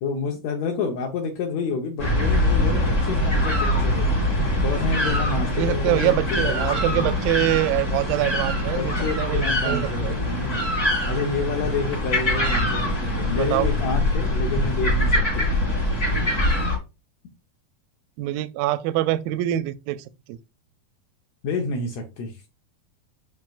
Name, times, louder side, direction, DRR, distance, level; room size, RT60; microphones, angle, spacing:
voice 1, 0.0-4.4 4.6-7.1 8.7-10.7 11.1-15.5 21.4-22.4, left 4 dB, 70° left, 1.7 m, -29 dB
sound 1, 2.0-16.8, left 1 dB, 25° left, 2.1 m, -23 dB
voice 2, 5.6-10.2 13.5-13.7 18.2-20.4, right 14 dB, 80° right, 2.1 m, -24 dB
7.5 x 5.9 x 2.4 m
omnidirectional pair, 4.4 m